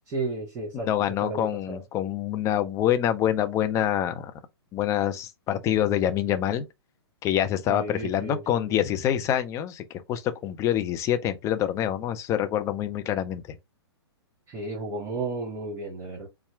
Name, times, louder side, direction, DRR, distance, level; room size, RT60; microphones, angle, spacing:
voice 1, 0.1-0.9 1.2-1.8 7.7-8.4 8.7-8.9 14.5-16.3, right 3 dB, 25° right, 2.4 m, -33 dB
voice 2, 0.7-4.3 4.7-6.7 7.2-13.6, left 11 dB, 20° left, 0.6 m, -26 dB
4.0 x 2.4 x 3.4 m
hypercardioid pair, 135°, 14 cm